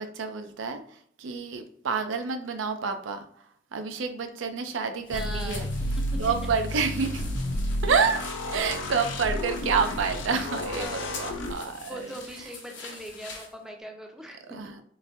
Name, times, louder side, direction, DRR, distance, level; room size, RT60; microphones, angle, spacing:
voice 1, 0.0-3.3 3.7-5.7 6.2-7.3 7.8-8.2 8.5-12.1 14.5-14.8, right 5 dB, 85° right, 7 dB, 0.5 m, -28 dB
sound 1, 5.1-11.5, left 1 dB, 85° left, 0.5 m, -31 dB
sound 2, 5.1-13.5, left 4 dB, 70° left, 0.9 m, -45 dB
voice 2, 5.1-5.7 6.1-6.2 10.7-11.2 11.5-14.4, equal, 5° right, 2 dB, 0.5 m, -41 dB
3.8 x 2.6 x 2.5 m, 0.63 s
head